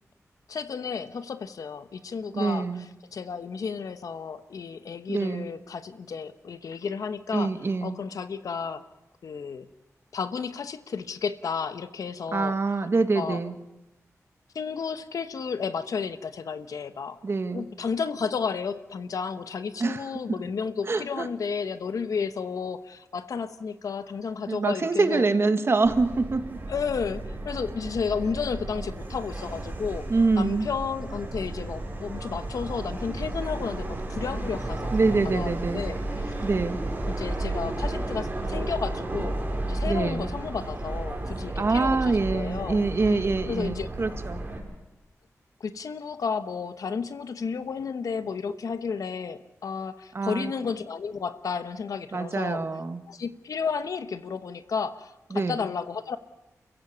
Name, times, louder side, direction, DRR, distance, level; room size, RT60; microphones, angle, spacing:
voice 1, 0.5-7.6 7.8-8.8 9.2-9.7 10.1-12.6 13.1-13.4 14.5-17.2 17.5-25.3 26.7-30.1 30.4-34.9 35.2-36.3 37.1-39.4 39.6-42.8 43.5-43.9 45.6-52.7 53.1-56.2, left 5 dB, 90° left, 11 dB, 1.1 m, -32 dB
voice 2, 2.3-2.8 5.1-5.5 7.3-8.0 12.3-13.5 17.2-17.6 19.8-20.0 20.9-21.3 24.5-26.6 30.1-30.7 34.9-35.8 36.4-36.8 39.9-40.3 41.6-44.4 50.1-50.5 52.1-53.0 55.3-55.6, right 3 dB, 45° right, 8 dB, 1.5 m, -25 dB
Subway metro underground, 25.8-44.6, right 1 dB, 30° right, 5.5 m, -33 dB
29.5 x 15.5 x 7.1 m, 0.98 s
wide cardioid pair, 110°, 6 cm